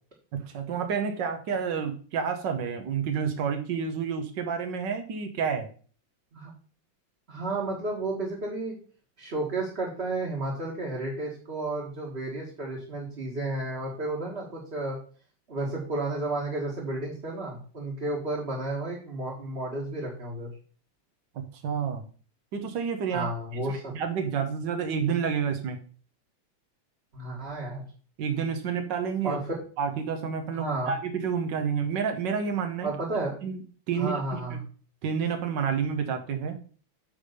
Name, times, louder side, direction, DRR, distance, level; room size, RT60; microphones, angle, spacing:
voice 1, 0.3-5.7 21.3-22.1 22.5-25.8 28.2-29.4 29.8-32.9 33.4-33.6 33.9-34.6 35.0-36.6, right 6 dB, 70° right, 6 dB, 1.7 m, -29 dB
voice 2, 7.3-8.7 9.2-15.0 15.5-20.5 23.1-23.9 27.1-27.8 29.2-29.4 30.5-30.9 32.8-33.4 34.0-34.6, right 2 dB, 35° right, -4 dB, 1.8 m, -32 dB
9.0 x 3.5 x 6.7 m, 0.42 s
omnidirectional pair, 2.1 m